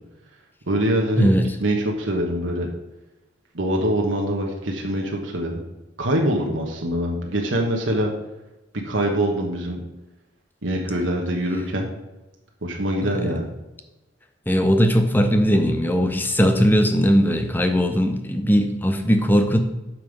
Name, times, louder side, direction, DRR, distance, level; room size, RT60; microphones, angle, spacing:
voice 1, 0.7-1.3 1.6-2.7 3.5-5.6 6.0-8.1 8.8-9.8 10.6-11.9 12.6-13.5, right 1 dB, 80° right, 0 dB, 1.3 m, -24 dB
voice 2, 1.2-1.6 13.0-13.4 14.5-19.6, equal, 10° left, 6 dB, 0.7 m, -19 dB
9.3 x 5.6 x 5.2 m, 1.0 s
head